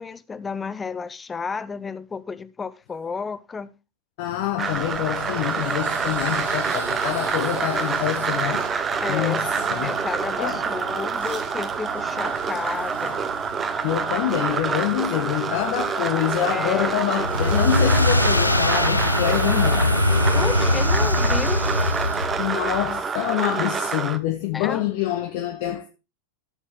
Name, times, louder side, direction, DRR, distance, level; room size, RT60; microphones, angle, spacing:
voice 1, 0.0-3.7 9.0-9.4 9.8-13.2 16.5-17.0 20.3-21.6 24.5-24.8, left 5 dB, 15° left, 0.6 m, -32 dB
voice 2, 4.2-8.7 9.1-10.0 10.4-10.7 13.8-20.0 22.4-25.9, left 12 dB, 50° left, 0.9 m, -26 dB
sound 1, 4.6-24.2, right 5 dB, 20° right, 0.8 m, -27 dB
sound 2, 4.6-19.8, equal, 80° right, 3.9 m, -41 dB
sound 3, 17.2-22.5, left 2 dB, 85° left, 0.5 m, -21 dB
12.0 x 6.4 x 3.6 m
figure-of-eight pair, 90°, 0 cm